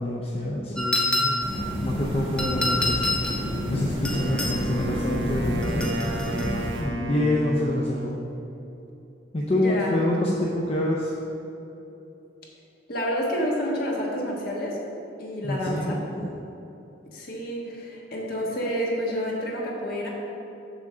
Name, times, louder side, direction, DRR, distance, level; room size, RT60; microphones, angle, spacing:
voice 1, 0.0-1.4 1.8-3.3 3.7-8.2 9.3-11.1 15.4-16.3, left 1 dB, 30° left, -3 dB, 0.5 m, -27 dB
sound 1, 0.8-1.6 2.4-3.4 4.1-4.6 5.6-6.5, left 2 dB, 5° left, 0.8 m, -27 dB
sound 2, 1.4-6.8, equal, 30° right, 1.7 m, -30 dB
Wind instrument woodwind instrument, 4.1-8.3, right 1 dB, 70° right, 0.7 m, -33 dB
voice 2, 9.5-10.0 12.9-14.8 15.2-16.0 17.1-20.1, equal, 55° left, -3 dB, 1.3 m, -29 dB
7.1 x 3.7 x 6.5 m, 2.9 s
head